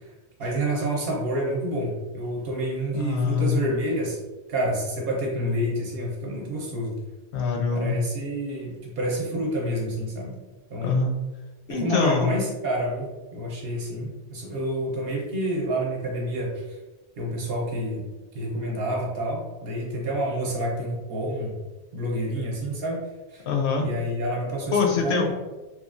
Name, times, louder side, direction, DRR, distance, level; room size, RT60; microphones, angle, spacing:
voice 1, 0.4-4.2 4.5-7.0 7.7-10.3 10.7-11.0 11.7-16.6 17.2-18.0 18.3-21.6 21.9-23.0 23.3-23.4 23.8-25.3, right 1 dB, 60° right, -2 dB, 0.8 m, -28 dB
voice 2, 2.9-3.6 7.3-8.0 10.8-11.1 11.7-12.3 23.5-23.9 24.7-25.3, left 5 dB, 75° left, 1 dB, 0.8 m, -24 dB
3.0 x 2.3 x 2.4 m, 1.1 s
omnidirectional pair, 1.2 m